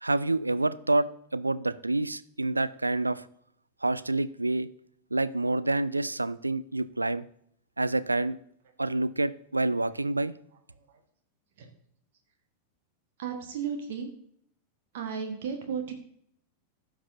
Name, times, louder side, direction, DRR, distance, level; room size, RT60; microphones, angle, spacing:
voice 1, 0.0-3.3 3.8-4.7 5.1-7.2 7.8-8.4 8.8-10.3, right 2 dB, 85° right, 16 dB, 0.3 m, -28 dB
voice 2, 13.2-14.1 14.9-15.9, right 7 dB, 55° right, 5 dB, 1.3 m, -35 dB
15.5 x 6.0 x 2.7 m, 0.67 s
figure-of-eight pair, 90°, 0 cm